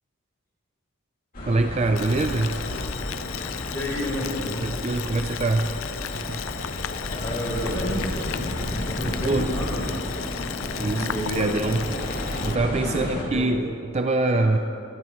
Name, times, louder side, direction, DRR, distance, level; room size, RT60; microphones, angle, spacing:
sound 1, 1.3-13.2, left 1 dB, 40° left, 2.6 m, -32 dB
voice 1, 1.5-2.6 4.6-5.7 6.1-6.4 9.2-9.5 10.8-14.6, right 2 dB, 30° right, 7 dB, 0.4 m, -25 dB
Boiling, 1.9-12.6, left 9 dB, 65° left, 0.4 m, -35 dB
voice 2, 3.7-4.7 7.1-9.9 10.8-11.5 12.8-13.5 14.4-14.6, left 1 dB, 10° left, -5 dB, 4.3 m, -31 dB
24.5 x 14.0 x 3.2 m, 2.8 s
head